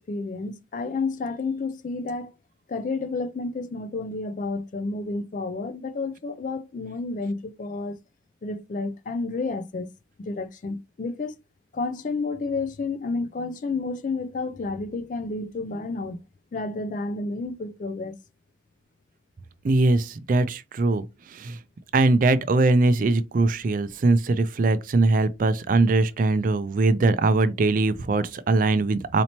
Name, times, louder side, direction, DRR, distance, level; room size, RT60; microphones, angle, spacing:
voice 1, 0.0-2.3 2.7-8.0 8.4-9.9 10.2-11.3 11.7-16.2 16.5-18.2, left 3 dB, 45° left, 0.3 m, -30 dB
voice 2, 19.6-21.0 21.3-21.6 21.9-29.2, right 2 dB, 45° right, 0.3 m, -21 dB
4.2 x 2.8 x 2.9 m
head